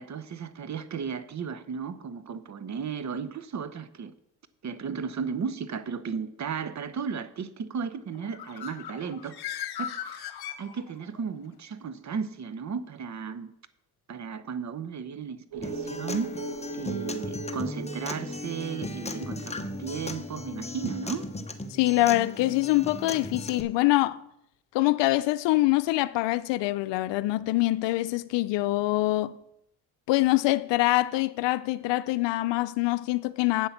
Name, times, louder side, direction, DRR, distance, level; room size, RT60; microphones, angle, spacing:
voice 1, 0.0-4.1 4.6-9.5 9.8-13.5 14.1-16.4 16.7-21.3, right 6 dB, 40° right, 0.9 m, -35 dB
Bird, 8.1-11.2, left 10 dB, 60° left, 1.2 m, -38 dB
sound 1, 15.5-20.7 21.0-21.1, right 7 dB, 70° right, 0.8 m, -40 dB
Acoustic guitar, 15.6-23.6, left 2 dB, 15° left, 1.0 m, -36 dB
voice 2, 21.7-24.2 24.7-29.4 30.1-33.7, left 18 dB, 80° left, 0.6 m, -24 dB
8.6 x 7.8 x 5.9 m
supercardioid pair, 80°, 43 cm